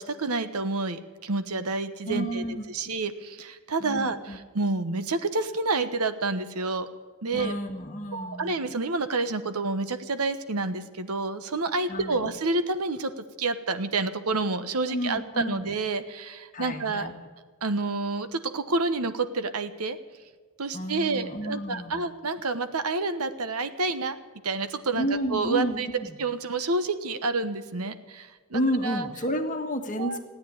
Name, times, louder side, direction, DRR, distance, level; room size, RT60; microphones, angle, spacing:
voice 1, 0.0-2.4 2.7-6.9 7.2-7.5 8.1-17.1 17.6-20.0 20.6-24.2 24.4-29.1 30.0-30.2, right 3 dB, 85° right, 11 dB, 1.1 m, -29 dB
voice 2, 2.0-2.6 3.8-4.4 7.3-8.5 11.9-12.3 14.9-15.6 16.5-17.1 20.7-22.0 25.0-26.2 28.5-30.2, equal, 35° left, 5 dB, 1.4 m, -31 dB
16.0 x 9.4 x 9.4 m, 1.4 s
head